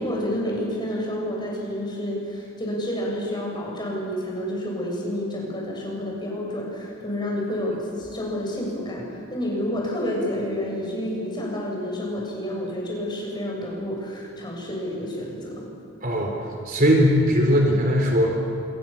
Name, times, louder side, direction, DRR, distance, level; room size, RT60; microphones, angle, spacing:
voice 1, 0.0-15.7, equal, 20° left, -2 dB, 7.6 m, -29 dB
voice 2, 16.0-16.3 16.7-18.4, equal, 40° right, 1 dB, 3.9 m, -19 dB
28.5 x 28.0 x 7.3 m, 2.6 s
head